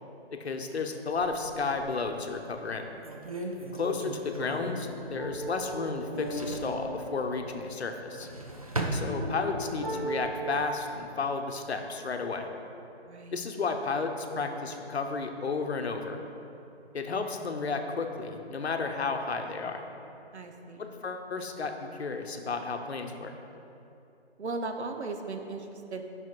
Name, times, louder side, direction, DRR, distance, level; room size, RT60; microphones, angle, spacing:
voice 1, 0.4-2.9 3.7-8.3 8.9-12.5 13.3-16.2 16.9-19.8 20.8-23.3, left 4 dB, 75° left, 5 dB, 0.9 m, -32 dB
sound 1, 1.1-2.1 2.6-2.7 3.0-5.7 6.0-6.8 7.9-9.7 10.1-10.8, right 1 dB, 35° right, 0.5 m, -37 dB
voice 2, 3.4-3.9 13.0-13.4 20.3-20.9 24.4-26.0, right 3 dB, 80° right, 5 dB, 1.0 m, -38 dB
sound 2, 4.6-10.2, right 1 dB, 20° right, 0.9 m, -39 dB
8.4 x 5.7 x 4.6 m, 2.8 s
hypercardioid pair, 175°, 33 cm